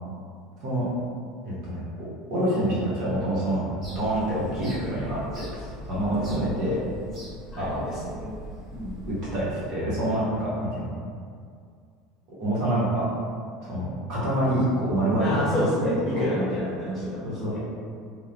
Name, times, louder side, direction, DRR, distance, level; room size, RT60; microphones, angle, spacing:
voice 1, 1.4-3.7 3.9-6.8 7.6-7.8 9.1-10.9 12.4-13.1 13.6-15.4 15.8-16.3 17.2-17.6, right 1 dB, 60° right, -8 dB, 1.0 m, -27 dB
sound 1, 3.8-9.4, equal, 35° right, 1.1 m, -41 dB
voice 2, 7.5-8.3 8.7-9.0 15.2-17.6, left 1 dB, 25° left, -7 dB, 0.8 m, -29 dB
2.9 x 2.1 x 2.5 m, 2.2 s
supercardioid pair, 95°, 0 cm